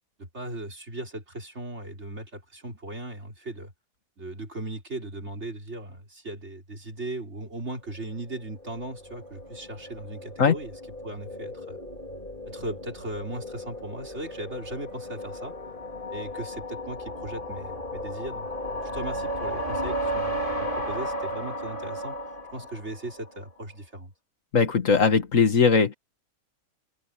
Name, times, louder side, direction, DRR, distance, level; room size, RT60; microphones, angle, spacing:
voice 1, 0.2-3.7 4.2-11.8 12.5-15.6 16.1-18.5 18.8-22.2 22.5-24.1, right 2 dB, 55° right, 4.3 m, -38 dB
sound 1, 8.1-23.3, equal, 40° left, 3.9 m, -35 dB
voice 2, 24.5-25.9, left 5 dB, 75° left, 2.0 m, -20 dB
omnidirectional pair, 1.4 m